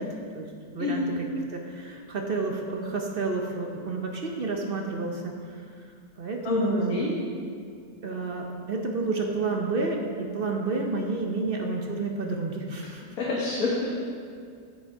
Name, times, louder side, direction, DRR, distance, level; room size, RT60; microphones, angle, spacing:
voice 1, 0.0-5.9 6.2-7.0 8.0-13.0, right 3 dB, 50° right, 2 dB, 0.7 m, -30 dB
voice 2, 6.4-7.1 13.2-13.9, left 2 dB, 65° left, -6 dB, 1.6 m, -27 dB
8.0 x 7.7 x 4.7 m, 2.2 s
omnidirectional pair, 1.7 m